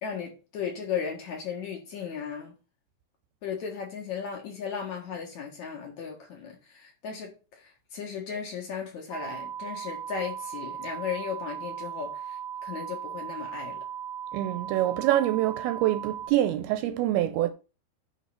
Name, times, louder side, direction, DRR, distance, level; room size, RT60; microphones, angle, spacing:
voice 1, 0.0-2.5 3.4-7.3 7.9-12.2 12.6-13.8, left 7 dB, 55° left, 2.3 m, -35 dB
sound 1, 9.1-16.3, right 9 dB, 30° left, 3.7 m, -37 dB
voice 2, 14.3-17.5, right 13 dB, 80° right, 2.3 m, -25 dB
9.5 x 3.8 x 5.6 m
omnidirectional pair, 4.7 m